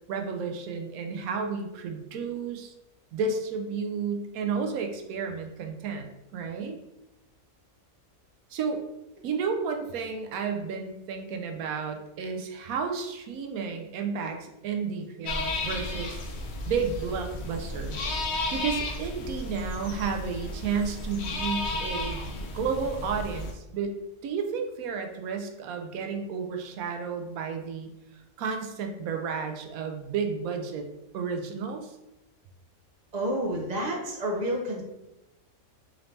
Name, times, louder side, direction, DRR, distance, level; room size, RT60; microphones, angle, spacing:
voice 1, 0.1-2.7 3.1-6.8 8.5-8.8 9.2-16.2 16.7-18.0 18.3-22.3 22.5-23.9 24.2-30.9 31.1-32.0, right 5 dB, 80° right, 4 dB, 1.0 m, -32 dB
sound 1, 15.2-23.5, left 2 dB, 60° left, 0.8 m, -33 dB
voice 2, 33.1-34.8, right 1 dB, 40° right, -2 dB, 0.7 m, -29 dB
4.0 x 2.7 x 3.2 m, 0.95 s
omnidirectional pair, 1.5 m